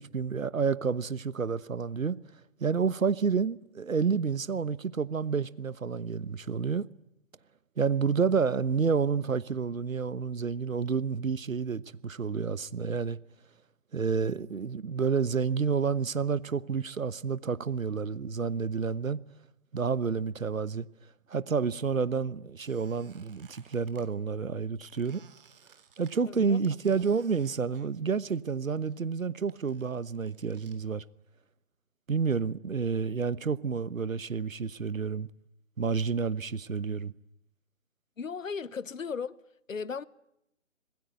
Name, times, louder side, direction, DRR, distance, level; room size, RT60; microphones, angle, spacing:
voice 1, 0.0-2.2 2.6-6.8 7.8-13.2 13.9-19.2 19.7-20.9 21.3-25.2 26.0-31.0 32.1-35.3 35.8-37.1, right 5 dB, 80° right, 1.2 m, -29 dB
Squeak, 22.6-24.1 24.9-28.6 28.8-30.8, right 7 dB, 40° right, 3.4 m, -60 dB
voice 2, 26.2-26.6 38.2-39.4 39.7-40.0, left 5 dB, 75° left, 1.1 m, -36 dB
26.5 x 20.5 x 9.4 m
figure-of-eight pair, 145°, 40 cm